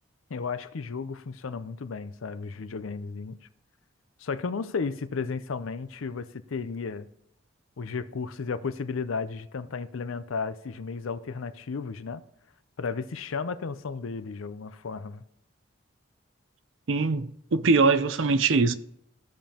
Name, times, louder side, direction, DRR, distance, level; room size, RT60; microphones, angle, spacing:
voice 1, 0.3-3.4 4.2-7.1 7.8-12.2 12.8-15.2, left 5 dB, 80° left, 0.5 m, -34 dB
voice 2, 16.9-18.7, right 4 dB, 65° right, 0.5 m, -22 dB
15.0 x 5.2 x 2.9 m
head